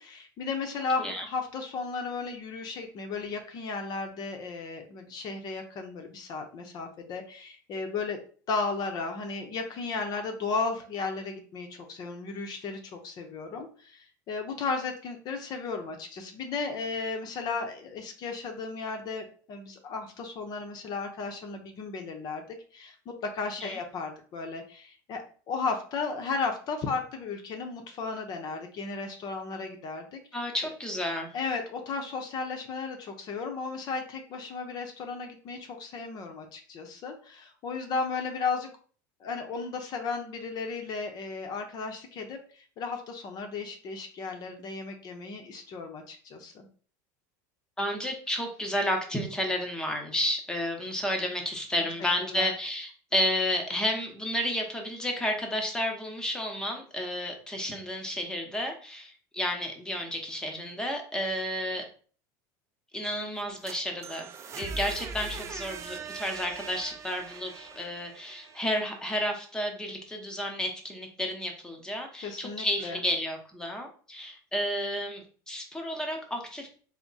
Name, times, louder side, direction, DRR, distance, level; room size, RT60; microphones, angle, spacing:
voice 1, 0.0-8.2 8.5-30.2 31.3-38.7 39.2-46.7 52.2-52.5 72.2-73.0, left 4 dB, 45° left, 4 dB, 0.7 m, -35 dB
voice 2, 30.3-31.3 47.8-61.8 62.9-76.8, equal, 10° left, 2 dB, 0.9 m, -31 dB
sound 1, 63.4-69.3, right 4 dB, 30° right, 0.4 m, -41 dB
3.5 x 2.1 x 4.0 m, 0.43 s
supercardioid pair, 115°, 9 cm